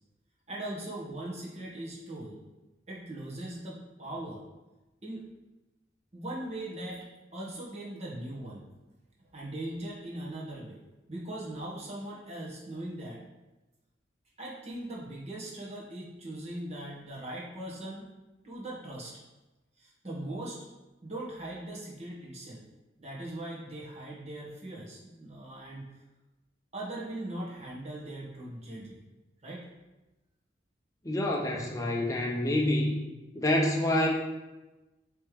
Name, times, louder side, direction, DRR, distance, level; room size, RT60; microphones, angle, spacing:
voice 1, 0.5-2.4 2.9-4.4 5.0-5.3 6.1-7.1 7.3-8.7 9.2-10.8 11.1-13.2 14.4-18.1 18.4-19.2 19.8-20.6 21.0-22.6 23.0-25.9 26.7-29.0 29.4-29.7, right 1 dB, 35° right, -5 dB, 1.6 m, -40 dB
voice 2, 31.0-33.0 33.3-34.1, left 1 dB, 20° left, -1 dB, 0.6 m, -27 dB
8.3 x 3.5 x 3.4 m, 1.1 s
head